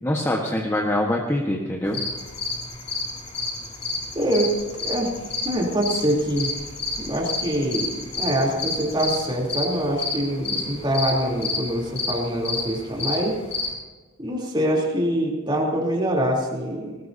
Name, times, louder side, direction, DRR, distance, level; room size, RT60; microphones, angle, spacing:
voice 1, 0.0-2.0, left 1 dB, 10° left, 0 dB, 1.3 m, -24 dB
sound 1, 1.9-13.7, left 3 dB, 25° left, 4.6 m, -30 dB
voice 2, 4.1-4.5 4.8-5.1 5.4-6.5 7.0-13.4 14.2-17.0, equal, 20° right, -2 dB, 3.4 m, -24 dB
20.0 x 19.5 x 2.8 m, 1.3 s
head